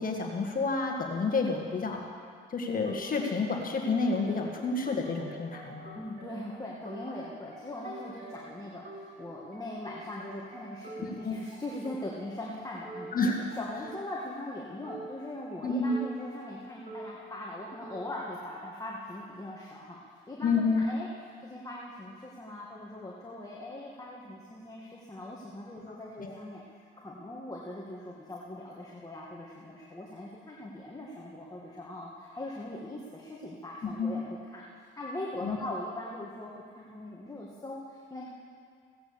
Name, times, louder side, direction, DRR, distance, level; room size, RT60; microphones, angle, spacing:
voice 1, 0.0-2.0 2.5-6.0 11.0-11.4 13.1-13.5 15.6-16.0 20.4-20.9 26.2-26.3 33.8-34.2 35.4-35.6, left 4 dB, 45° left, 1 dB, 1.8 m, -29 dB
sound 1, 2.9-18.8, right 2 dB, 40° right, 3.8 m, -47 dB
voice 2, 5.9-13.1 13.6-21.1 21.4-26.6 27.0-34.6 35.0-38.3, left 1 dB, 20° left, -4 dB, 2.0 m, -41 dB
16.5 x 9.0 x 7.0 m, 2.2 s
cardioid pair, 90°, 20 cm